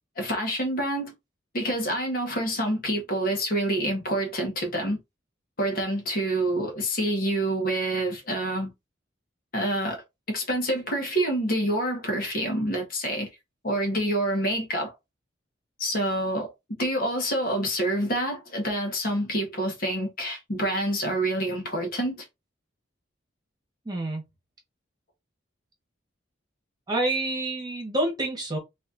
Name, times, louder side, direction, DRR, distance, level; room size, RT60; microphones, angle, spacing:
voice 1, 0.2-1.1 1.5-5.0 5.6-8.7 9.5-10.0 10.3-13.3 13.6-14.9 15.8-22.2, right 1 dB, 45° left, 1.1 m, -27 dB
voice 2, 23.8-24.2 26.9-28.6, right 2 dB, 20° right, 1.2 m, -27 dB
4.1 x 2.6 x 2.5 m
head